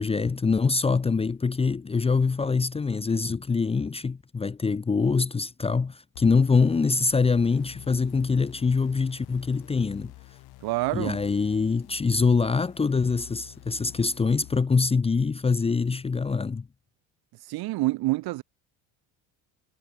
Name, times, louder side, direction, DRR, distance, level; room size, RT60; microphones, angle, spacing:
voice 1, 0.0-10.1 10.9-16.7, left 4 dB, 15° left, 0.9 m, -24 dB
sound 1, 6.1-14.6, left 19 dB, 65° left, 7.9 m, -48 dB
voice 2, 10.6-11.2 17.5-18.4, right 19 dB, 60° right, 2.6 m, -27 dB
cardioid pair, 130°, 41 cm